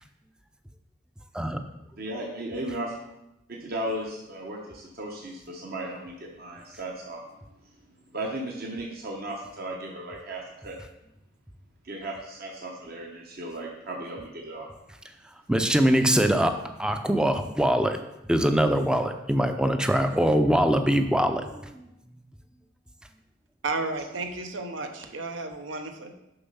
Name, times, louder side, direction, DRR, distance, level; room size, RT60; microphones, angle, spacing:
voice 1, 2.0-3.0 3.5-7.3 7.6-7.8 8.1-10.8 11.8-14.7, right 1 dB, 55° right, -1 dB, 0.9 m, -36 dB
voice 2, 15.5-18.0 18.3-21.8, equal, 5° right, 7 dB, 0.4 m, -23 dB
voice 3, 23.6-26.1, right 3 dB, 80° right, 5 dB, 0.9 m, -33 dB
6.9 x 5.1 x 5.5 m, 0.91 s
head